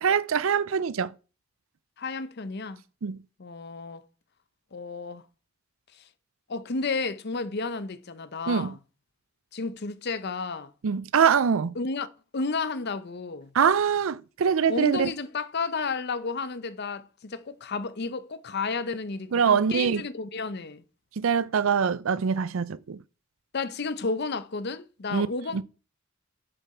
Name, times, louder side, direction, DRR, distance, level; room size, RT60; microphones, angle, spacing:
voice 1, 0.0-1.1 3.0-3.2 8.5-8.7 10.8-11.8 13.5-15.1 19.3-20.0 21.2-23.0 25.1-25.3 25.5-25.6, right 6 dB, 70° right, 0.5 m, -23 dB
voice 2, 2.0-2.8 3.4-4.0 4.7-5.2 6.0-6.1 6.5-8.8 9.5-10.7 11.8-12.1 12.3-13.5 14.7-20.8 23.5-25.6, left 4 dB, 50° left, 0.7 m, -32 dB
7.2 x 6.9 x 4.3 m
head